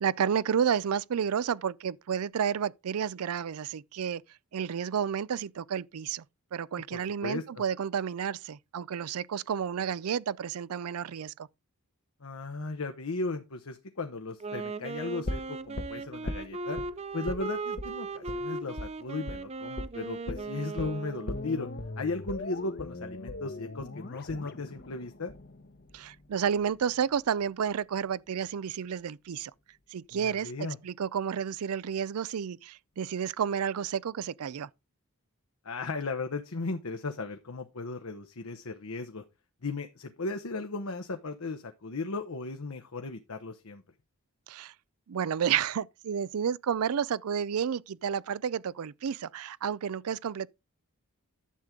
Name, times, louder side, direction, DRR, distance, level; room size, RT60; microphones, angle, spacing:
voice 1, 0.0-4.2 4.5-6.2 6.5-11.5 25.9-29.5 29.9-34.7 44.5-44.7 45.1-50.5, right 7 dB, 80° right, 0.4 m, -31 dB
voice 2, 6.9-7.6 12.2-16.8 17.1-21.7 22.0-25.3 30.1-30.8 35.6-39.2 39.6-43.8, left 3 dB, 75° left, 1.0 m, -36 dB
Wind instrument woodwind instrument, 14.3-21.5, right 3 dB, 30° right, 0.5 m, -38 dB
sound 1, 15.2-16.9 17.3-17.5 17.8-17.9 18.3-18.4 18.8-18.9 19.3-19.5 19.8-19.9 20.3-26.3 26.6-26.7, left 2 dB, 45° left, 0.9 m, -39 dB
11.0 x 7.3 x 3.7 m
head